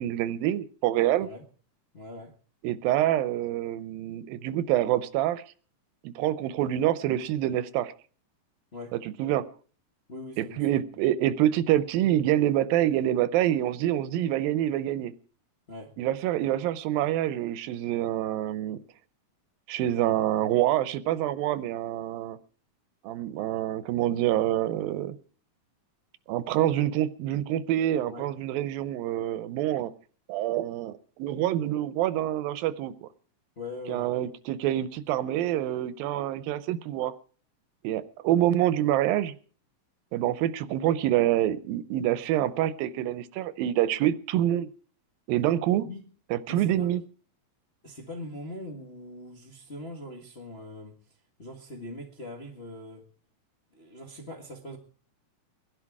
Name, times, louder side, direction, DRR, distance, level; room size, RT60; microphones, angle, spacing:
voice 1, 0.0-1.3 2.6-5.4 6.0-7.9 9.2-9.4 10.4-15.1 16.0-18.8 19.7-22.4 23.0-25.2 26.3-29.9 30.3-33.1 33.9-37.1 37.8-39.4 40.1-44.7 45.3-45.9 46.3-47.0, right 12 dB, 85° right, 15 dB, 2.6 m, -26 dB
voice 2, 1.9-2.3 8.7-8.9 10.1-10.8 15.7-15.9 28.0-28.3 33.5-34.1 45.8-46.1 46.5-46.9 47.8-51.0 51.4-53.0 53.7-54.8, left 1 dB, 35° left, -1 dB, 1.0 m, -41 dB
20.5 x 11.0 x 4.7 m, 0.42 s
omnidirectional pair, 4.0 m